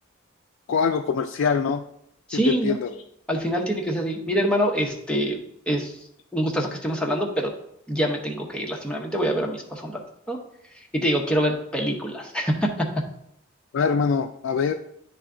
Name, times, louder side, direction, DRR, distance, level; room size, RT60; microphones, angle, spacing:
voice 1, 0.7-1.8 2.3-3.0 13.7-14.7, left 5 dB, 70° left, 5 dB, 0.3 m, -24 dB
voice 2, 2.3-2.8 3.3-5.4 5.7-5.9 6.3-7.5 7.9-10.0 10.3-10.4 10.9-12.9, equal, 5° left, 0 dB, 0.7 m, -25 dB
9.4 x 3.4 x 3.7 m, 0.75 s
head